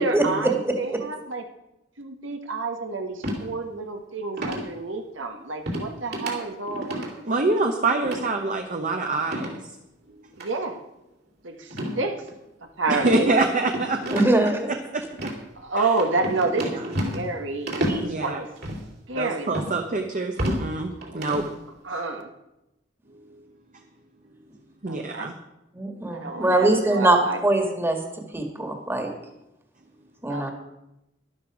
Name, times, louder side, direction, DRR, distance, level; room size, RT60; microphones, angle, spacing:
voice 1, 0.0-1.4 2.0-7.2 10.4-10.8 11.4-12.2 12.8-13.3 15.6-18.5 19.1-19.9 21.8-22.3 24.9-25.3 26.1-27.4 30.3-30.5, right 3 dB, 80° right, 4 dB, 1.4 m, -29 dB
voice 2, 0.6-1.0 14.1-14.7 17.9-18.0 25.7-28.0 28.3-29.1 30.2-30.5, right 2 dB, 10° right, 3 dB, 1.8 m, -22 dB
sound 1, 3.2-3.4 4.4-4.7 5.7-5.9 6.1-6.3 6.7-7.1 8.0-8.2 9.2-9.6 10.3-10.5 11.7-12.0 12.3-12.4 13.0-14.5 15.1-15.4 16.0-17.3 17.7-18.0 18.6-18.8 19.5-19.7 20.1-20.6 21.0-21.5, equal, 60° right, 3.0 m, -30 dB
voice 3, 7.2-9.6 12.9-14.1 14.9-15.3 15.8-15.9 18.0-18.4 19.1-21.4 24.8-25.3, right 3 dB, 45° right, 4 dB, 0.9 m, -25 dB
12.5 x 11.5 x 4.9 m, 0.90 s
head